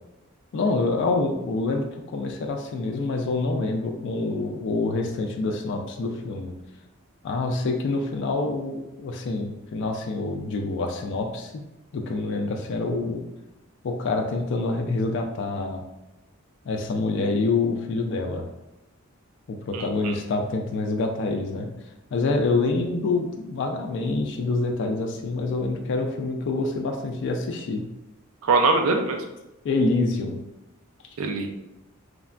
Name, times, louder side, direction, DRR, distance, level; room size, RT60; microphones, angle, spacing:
voice 1, 0.5-6.5 7.2-11.6 11.9-13.2 13.8-15.8 16.7-18.5 19.5-21.7 22.1-27.8 29.6-30.4, left 3 dB, 60° left, 2 dB, 0.3 m, -26 dB
voice 2, 19.7-20.1 28.4-29.2 31.2-31.5, right 3 dB, 80° right, 4 dB, 0.4 m, -23 dB
3.2 x 2.1 x 2.4 m, 0.93 s
head